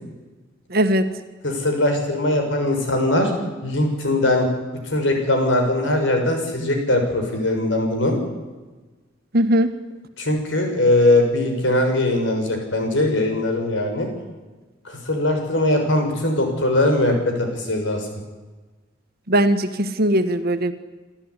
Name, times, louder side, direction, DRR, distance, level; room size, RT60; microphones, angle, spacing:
voice 1, 0.7-1.1 9.3-9.7 19.3-20.7, right 1 dB, 55° right, 8 dB, 1.7 m, -19 dB
voice 2, 1.4-3.3 3.6-4.5 4.8-8.2 10.2-14.1 14.8-18.2, left 1 dB, 75° left, 4 dB, 6.5 m, -20 dB
27.5 x 13.5 x 10.0 m, 1.2 s
head